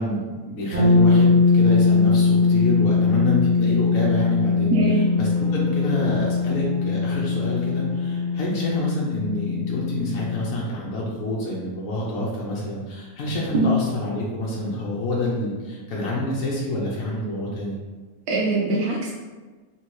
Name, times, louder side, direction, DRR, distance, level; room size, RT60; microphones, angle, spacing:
voice 1, 0.0-4.7 5.2-17.8, left 1 dB, 70° left, -5 dB, 1.1 m, -28 dB
sound 1, 0.7-10.5, left 4 dB, 35° right, 1.3 m, -20 dB
voice 2, 4.7-5.0 13.5-13.7 18.3-19.1, right 2 dB, 85° right, -5 dB, 1.2 m, -22 dB
Bowed string instrument, 4.9-9.3, left 1 dB, 10° left, 1.0 m, -41 dB
3.4 x 2.7 x 4.6 m, 1.3 s
omnidirectional pair, 1.5 m